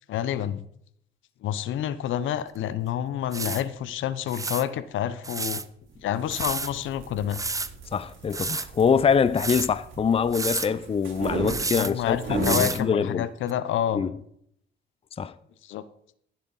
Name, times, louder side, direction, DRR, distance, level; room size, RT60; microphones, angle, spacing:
voice 1, 0.1-0.7 1.4-5.6 6.0-7.4 11.7-14.0 15.6-15.8, left 10 dB, 80° left, 0.7 m, -28 dB
sound 1, 2.5-2.6 3.3-3.6 4.3-4.6 5.2-5.6 6.3-6.7 7.3-7.7 8.3-8.7 9.4-9.7 10.3-10.7 11.5-11.9 12.4-12.8 13.5-13.6, right 3 dB, 15° right, 0.6 m, -30 dB
sound 2, 6.0-12.8, right 3 dB, 75° right, 3.6 m, -36 dB
voice 2, 7.9-13.3 13.9-14.1 15.2-15.3, left 6 dB, 30° left, 0.5 m, -24 dB
15.0 x 7.5 x 4.1 m
cardioid pair, 90°, 20 cm